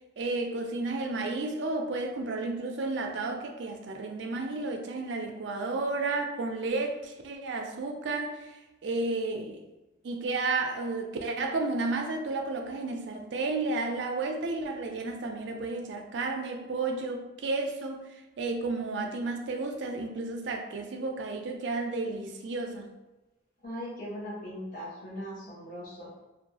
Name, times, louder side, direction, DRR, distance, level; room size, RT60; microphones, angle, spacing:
voice 1, 0.2-9.6 10.0-22.9, right 3 dB, 65° right, 3 dB, 0.4 m, -32 dB
voice 2, 23.6-26.2, equal, 45° left, -7 dB, 0.7 m, -39 dB
2.6 x 2.2 x 2.8 m, 1.0 s
head